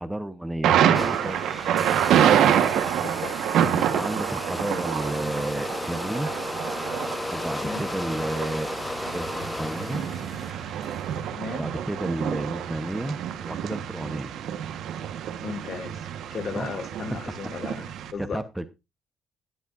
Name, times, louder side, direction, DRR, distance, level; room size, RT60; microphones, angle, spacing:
voice 1, 0.0-1.4 2.7-3.0 3.7-6.3 7.3-8.8 9.1-10.0 11.4-14.3 16.5-17.2 18.2-18.7, right 1 dB, 10° right, 0.9 m, -32 dB
Thunder, 0.6-18.1, right 9 dB, 85° right, 1.2 m, -27 dB
sound 1, 0.9-11.1, left 2 dB, 15° left, 0.6 m, -34 dB
voice 2, 3.0-3.4 7.6-7.9 11.3-11.7 15.4-16.0 16.3-18.4, left 5 dB, 55° left, 1.7 m, -35 dB
18.0 x 8.1 x 2.5 m
cardioid pair, 90°, 0 cm